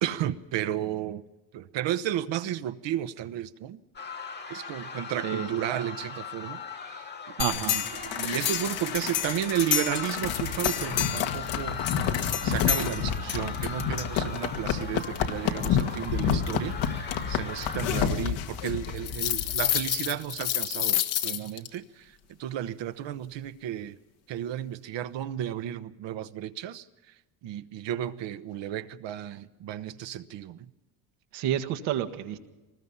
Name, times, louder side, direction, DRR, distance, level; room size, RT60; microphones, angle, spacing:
voice 1, 0.0-1.2 1.5-3.8 4.5-7.3 7.6-11.9 12.4-16.8 17.3-22.1 22.4-24.0 24.3-26.8 27.4-30.7, right 11 dB, 60° right, 1.1 m, -33 dB
sound 1, 4.0-17.9, left 5 dB, 20° left, 1.4 m, -40 dB
sound 2, 7.4-21.7, left 9 dB, 70° left, 1.9 m, -28 dB
voice 2, 7.4-7.8 31.3-32.4, right 11 dB, 85° right, 1.9 m, -29 dB
23.5 x 20.0 x 5.6 m
cardioid pair, 115°, 49 cm